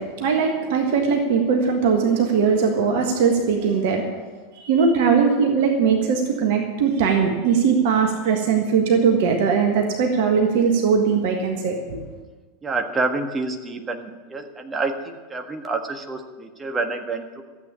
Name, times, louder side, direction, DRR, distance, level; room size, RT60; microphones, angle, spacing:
voice 1, 0.0-4.2 4.6-12.0, right 6 dB, 55° right, 3 dB, 1.5 m, -20 dB
voice 2, 12.6-17.4, right 3 dB, 20° right, 4 dB, 1.6 m, -28 dB
13.5 x 8.5 x 8.6 m, 1.4 s
figure-of-eight pair, 80°, 0 cm